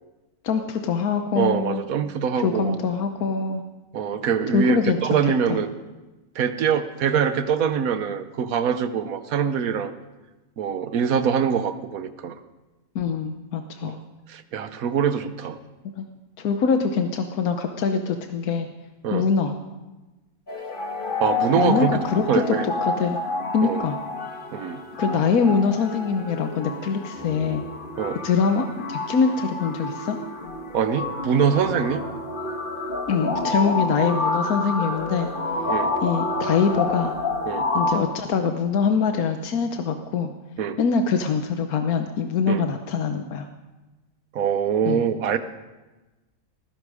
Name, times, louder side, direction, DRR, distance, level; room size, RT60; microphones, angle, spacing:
voice 1, 0.4-1.8 2.4-3.6 4.5-5.0 5.5-5.6 12.9-14.0 16.0-16.1 16.4-18.7 19.1-19.5 21.6-22.5 22.8-23.2 23.5-24.0 25.0-27.6 28.2-30.2 33.1-35.3 36.0-37.1 37.7-40.3 40.8-43.4 44.9-45.0, left 5 dB, 85° left, 6 dB, 1.4 m, -23 dB
voice 2, 1.4-2.8 3.9-5.7 6.3-9.9 10.6-12.4 13.8-14.0 14.3-15.6 19.0-19.3 21.2-22.0 22.3-22.7 23.6-23.8 24.5-24.8 28.0-28.2 30.7-32.0 35.7-35.9 37.5-37.7 40.6-40.8 42.5-42.6 44.3-45.4, right 7 dB, 75° right, 11 dB, 1.3 m, -24 dB
sound 1, 20.5-38.0, left 2 dB, 35° left, 1.6 m, -29 dB
17.5 x 15.5 x 4.9 m, 1.1 s
omnidirectional pair, 1.5 m